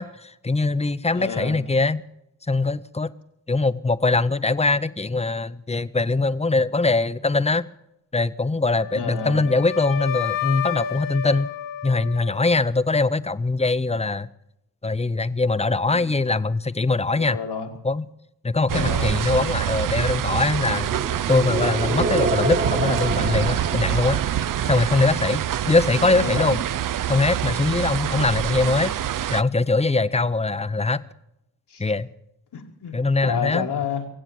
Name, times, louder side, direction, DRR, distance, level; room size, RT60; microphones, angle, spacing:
voice 1, 0.0-2.0 2.5-3.1 3.5-7.6 8.1-11.5 11.8-14.3 14.8-17.4 17.8-18.0 18.4-20.9 21.3-24.2 24.6-26.6 27.1-28.9 29.3-31.0 31.8-32.1 32.9-33.7, left 3 dB, 15° left, 15 dB, 0.6 m, -22 dB
voice 2, 1.1-1.6 8.9-9.5 15.8-16.2 17.1-17.7 18.7-19.2 25.9-26.6 31.7-31.8 32.5-34.1, left 6 dB, 75° left, 2 dB, 2.3 m, -30 dB
Wind instrument woodwind instrument, 8.7-12.9, left 8 dB, 55° left, 1.4 m, -31 dB
sound 1, 18.7-29.4, right 11 dB, 55° right, 0.5 m, -26 dB
sound 2, 20.6-25.6, right 2 dB, 30° right, 1.4 m, -29 dB
23.5 x 8.0 x 7.8 m, 0.85 s
cardioid pair, 50°, 40 cm